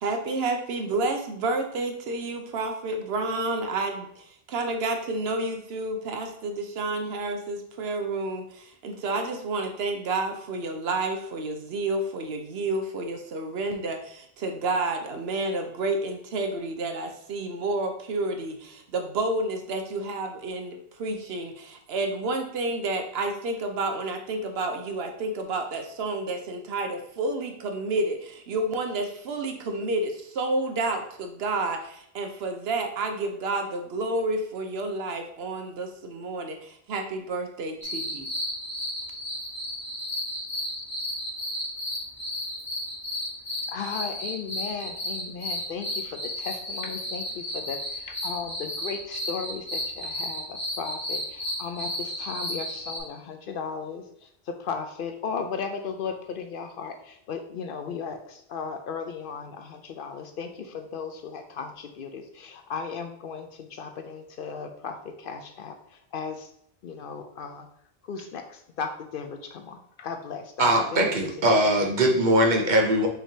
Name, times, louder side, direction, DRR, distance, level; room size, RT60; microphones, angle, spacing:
voice 1, 0.0-38.3, right 2 dB, 80° right, 5 dB, 0.9 m, -30 dB
sound 1, 37.8-53.0, equal, 15° left, 1.1 m, -33 dB
voice 2, 43.7-66.5 66.8-67.7 68.0-71.9, left 6 dB, 65° left, 5 dB, 0.7 m, -36 dB
voice 3, 70.6-73.1, right 1 dB, 50° right, 2 dB, 0.8 m, -21 dB
5.8 x 3.3 x 2.7 m, 0.69 s
omnidirectional pair, 1.0 m